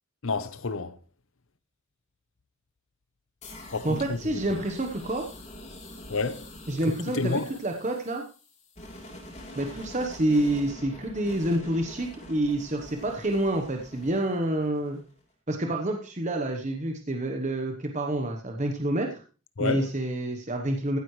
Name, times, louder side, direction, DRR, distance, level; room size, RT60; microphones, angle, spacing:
voice 1, 0.2-1.0 3.7-4.2 6.1-6.4 7.1-7.5 19.6-19.9, left 3 dB, 65° left, 0.8 m, -29 dB
sound 1, 3.4-15.2, left 1 dB, 30° left, 3.1 m, -45 dB
voice 2, 3.8-5.2 6.7-8.2 9.5-15.0 15.5-19.2 19.6-21.0, right 1 dB, 35° right, 1.0 m, -28 dB
15.0 x 9.4 x 3.2 m
head